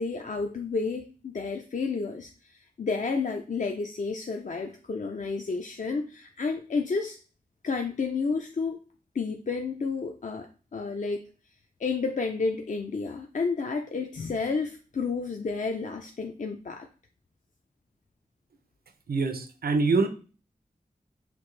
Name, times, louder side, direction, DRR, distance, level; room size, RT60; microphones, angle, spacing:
voice 1, 0.0-7.2 7.6-8.8 9.1-11.3 11.8-16.9, left 4 dB, 55° left, 4 dB, 0.4 m, -31 dB
voice 2, 19.1-20.1, right 3 dB, 80° right, 8 dB, 0.6 m, -24 dB
5.7 x 2.5 x 3.2 m, 0.37 s
wide cardioid pair, 60°, 16 cm